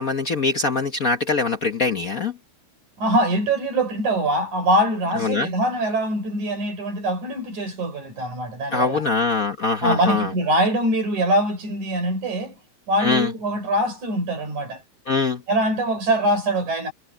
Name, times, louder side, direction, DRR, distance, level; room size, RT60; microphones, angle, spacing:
voice 1, 0.0-2.3 5.2-5.5 8.7-10.3 13.0-13.3 15.1-15.4, left 4 dB, 70° left, 0.8 m, -22 dB
voice 2, 3.0-9.1 9.8-12.5 12.9-14.8 15.5-16.9, right 1 dB, 90° right, 6.8 m, -23 dB
omnidirectional pair, 3.3 m